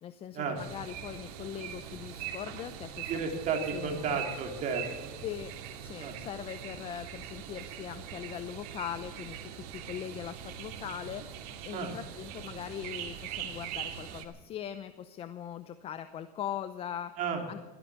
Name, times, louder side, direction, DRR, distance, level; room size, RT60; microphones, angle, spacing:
voice 1, 0.0-3.1 3.7-4.2 5.2-5.5 5.8-9.4 9.7-11.2 11.6-17.1 17.5-17.6, left 9 dB, 30° left, 11 dB, 0.7 m, -40 dB
sound 1, 0.6-14.3, right 9 dB, 80° right, 2.4 m, -42 dB
voice 2, 3.1-5.2 6.0-6.1 11.7-11.9 17.2-17.4, right 5 dB, 40° right, 4 dB, 3.1 m, -33 dB
17.0 x 14.0 x 6.0 m, 1.3 s
cardioid pair, 160°, 20 cm